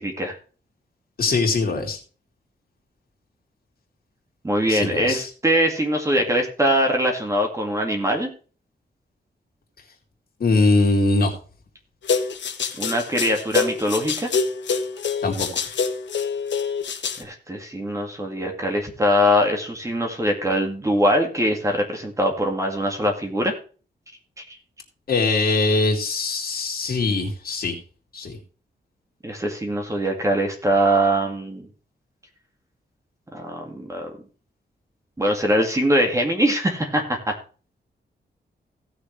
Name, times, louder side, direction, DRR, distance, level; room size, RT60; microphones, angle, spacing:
voice 1, 0.0-0.3 4.4-8.3 12.8-14.3 17.2-23.6 24.4-24.5 29.2-31.7 33.3-34.1 35.2-37.3, equal, 15° right, 2 dB, 2.1 m, -22 dB
voice 2, 1.2-2.0 4.7-5.3 10.4-11.3 15.2-15.5 25.1-27.7 28.1-28.4, left 3 dB, 55° left, 1 dB, 2.9 m, -21 dB
sound 1, 12.0-17.2, left 5 dB, 80° left, 1.3 m, -26 dB
17.0 x 6.6 x 3.3 m, 0.37 s
wide cardioid pair, 160°, 18 cm